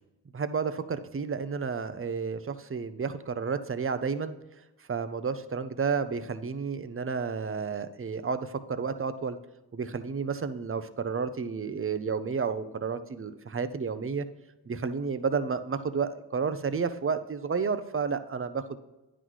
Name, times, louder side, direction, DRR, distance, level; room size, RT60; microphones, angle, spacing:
voice 1, 0.3-4.3 4.9-9.4 9.7-14.3 14.7-18.8, right 5 dB, 30° right, 11 dB, 0.6 m, -31 dB
9.5 x 4.1 x 4.6 m, 1.0 s
cardioid pair, 55°, 42 cm